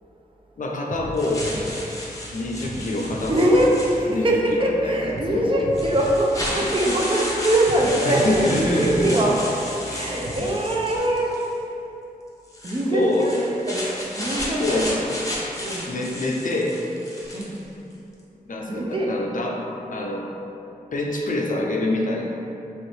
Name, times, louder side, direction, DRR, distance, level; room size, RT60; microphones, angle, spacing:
voice 1, 0.6-1.5 2.3-3.5 4.1-4.3 4.8-5.6 8.1-9.1 9.9-10.1 12.9-13.3 14.6-14.9 15.9-16.8 18.5-19.6 19.9-20.3 20.9-22.3, left 2 dB, 60° left, -1 dB, 0.4 m, -25 dB
sound 1, 0.9-11.0, equal, 80° right, 0.9 m, -37 dB
sound 2, 1.2-4.4 5.2-5.3 5.7-11.5 12.5-17.6, left 1 dB, 20° left, 0.7 m, -33 dB
voice 2, 3.3-9.6 9.9-11.7 12.6-15.1 15.6-15.9 17.3-17.6 18.7-19.1, right 1 dB, 35° right, -3 dB, 0.5 m, -23 dB
2.9 x 2.7 x 3.1 m, 2.9 s
cardioid pair, 55°, 15 cm